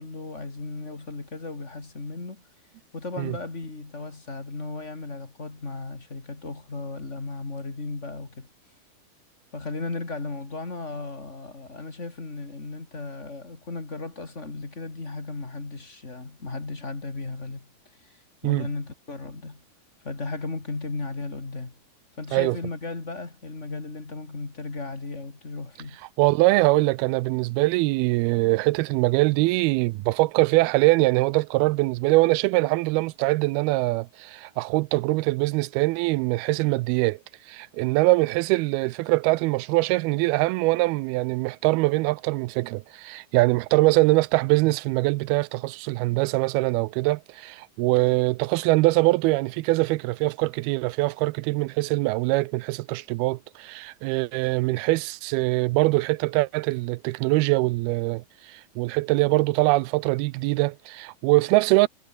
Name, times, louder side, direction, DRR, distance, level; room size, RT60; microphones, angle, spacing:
voice 1, 0.0-2.4 2.9-8.5 9.5-17.7 18.0-18.2 18.4-19.6 20.0-21.7 22.2-26.0, left 3 dB, 20° left, 2.9 m, -35 dB
voice 2, 26.2-37.2 37.5-61.9, right 21 dB, 85° right, 2.5 m, -23 dB
omnidirectional pair, 4.4 m